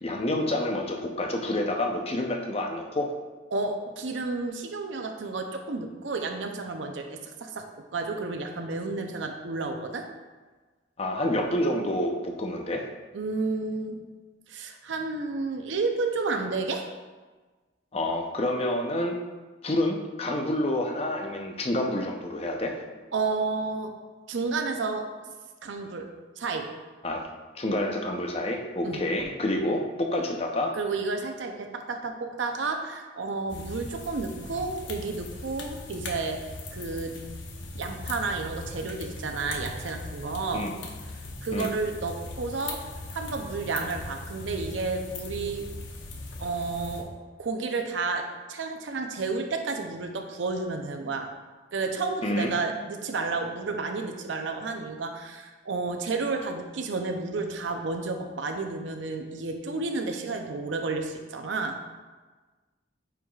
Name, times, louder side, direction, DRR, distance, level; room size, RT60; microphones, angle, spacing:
voice 1, 0.0-3.1 11.0-12.9 17.9-19.1 19.6-22.8 27.0-27.3 27.5-30.7 40.5-40.7 41.5-41.7 52.2-52.5, left 1 dB, 30° left, 2 dB, 0.6 m, -28 dB
voice 2, 3.5-10.1 13.1-14.1 14.5-16.9 23.1-23.9 24.3-25.0 25.6-26.1 26.4-26.7 28.8-29.0 30.7-36.4 36.7-37.2 37.8-40.7 41.4-42.9 43.1-45.7 46.4-47.1 47.4-51.3 51.7-61.8, right 3 dB, 75° right, 4 dB, 0.6 m, -31 dB
sound 1, 33.5-47.0, left 2 dB, 75° left, 0.9 m, -39 dB
9.0 x 4.7 x 2.4 m, 1.3 s
head